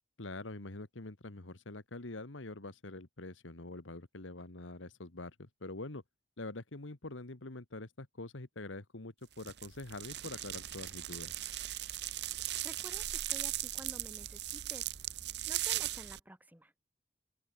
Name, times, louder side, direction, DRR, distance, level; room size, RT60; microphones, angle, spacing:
voice 1, 0.2-6.0 6.4-11.3, left 2 dB, 90° left, 1.7 m, -45 dB
sound 1, 9.4-16.2, right 14 dB, 60° right, 0.9 m, -38 dB
voice 2, 12.6-14.9 15.5-16.7, equal, 10° right, 2.5 m, -51 dB
open air
head